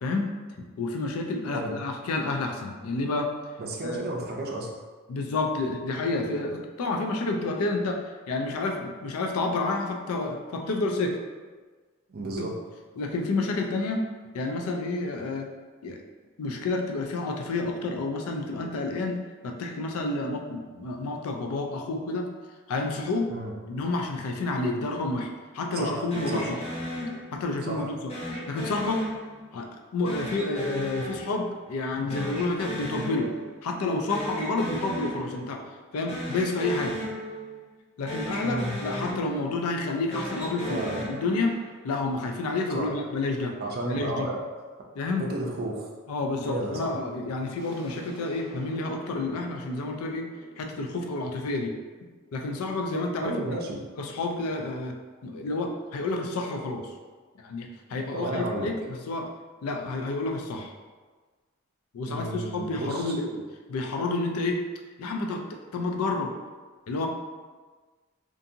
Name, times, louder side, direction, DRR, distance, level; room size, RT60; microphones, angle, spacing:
voice 1, 0.6-3.3 3.8-4.0 5.1-11.2 12.4-12.5 13.0-14.0 14.3-15.5 15.8-16.0 16.4-22.3 22.7-23.3 23.7-26.6 27.3-28.1 28.5-29.0 29.5-33.3 33.6-37.0 38.0-40.8 41.1-41.5 41.8-43.6 43.9-44.3 45.0-45.3 46.1-50.3 50.6-51.7 52.3-53.4 54.0-55.0 55.2-56.9 57.4-59.3 59.6-60.7 61.9-63.4 63.7-64.6 65.0-66.3 66.9-67.1, left 2 dB, 85° left, 3 dB, 0.4 m, -29 dB
voice 2, 3.6-4.7 12.1-12.6 23.3-23.5 25.7-26.5 27.7-27.9 38.4-38.7 40.7-41.0 42.7-42.9 43.6-44.4 45.2-45.9 46.5-46.9 53.2-53.8 58.1-58.7 62.1-63.1, right 1 dB, 45° right, -1 dB, 0.4 m, -32 dB
sound 1, 26.1-27.6 28.1-29.6 30.1-33.6 33.9-35.6 36.0-37.8 38.1-39.6 40.0-41.8, equal, 30° left, 0.6 m, -36 dB
sound 2, 47.6-53.0, right 1 dB, 60° left, 1.2 m, -50 dB
2.5 x 2.5 x 2.6 m, 1.4 s
head